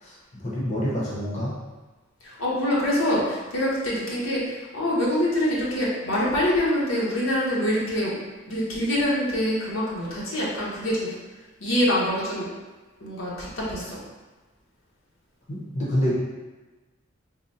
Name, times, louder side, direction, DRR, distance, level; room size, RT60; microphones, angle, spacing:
voice 1, 0.0-1.6 15.5-16.1, equal, 35° left, -6 dB, 0.8 m, -27 dB
voice 2, 2.2-8.2 8.5-11.1 11.6-12.4 13.0-14.0, equal, 80° left, -6 dB, 1.0 m, -25 dB
3.9 x 2.2 x 4.1 m, 1.2 s
head